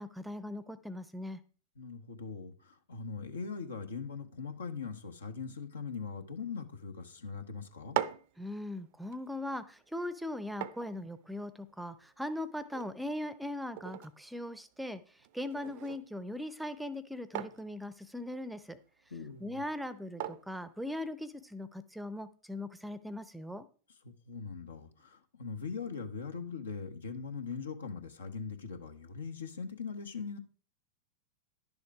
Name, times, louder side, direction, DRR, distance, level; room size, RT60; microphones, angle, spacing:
voice 1, 0.0-1.4 8.4-15.0 15.3-18.8 19.4-23.7, left 1 dB, 5° right, 0.6 m, -39 dB
voice 2, 1.8-8.0 19.1-19.6 24.0-30.4, left 5 dB, 70° left, 1.1 m, -41 dB
sound 1, 7.7-21.6, right 13 dB, 50° right, 0.6 m, -44 dB
11.0 x 7.0 x 4.7 m
figure-of-eight pair, 90°, 0 cm